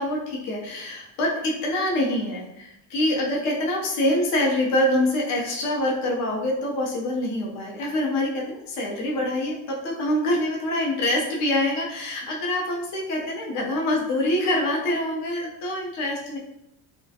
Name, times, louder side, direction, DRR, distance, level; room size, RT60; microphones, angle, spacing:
voice 1, 0.0-16.4, left 1 dB, 45° left, -2 dB, 0.5 m, -25 dB
2.4 x 2.1 x 2.6 m, 0.85 s
cardioid pair, 175°, 41 cm